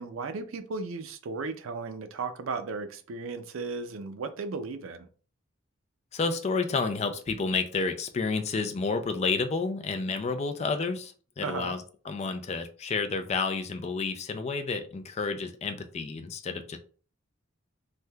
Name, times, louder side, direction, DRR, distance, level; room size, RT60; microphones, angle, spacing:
voice 1, 0.0-5.1 11.4-11.7, right 4 dB, 90° right, 0.4 m, -35 dB
voice 2, 6.1-16.8, left 4 dB, 35° left, 0.3 m, -30 dB
3.2 x 2.7 x 2.2 m
head